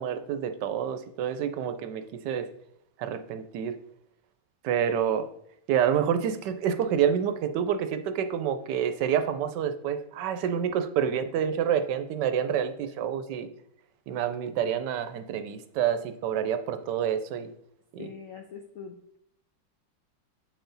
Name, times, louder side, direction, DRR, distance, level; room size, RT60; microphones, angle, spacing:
voice 1, 0.0-2.5 3.0-3.8 4.6-5.3 5.7-13.5 14.1-17.5 17.9-18.1, right 8 dB, 75° right, 10 dB, 1.1 m, -28 dB
voice 2, 18.0-19.2, left 6 dB, 75° left, 4 dB, 0.7 m, -43 dB
7.8 x 4.1 x 3.9 m, 0.70 s
omnidirectional pair, 2.0 m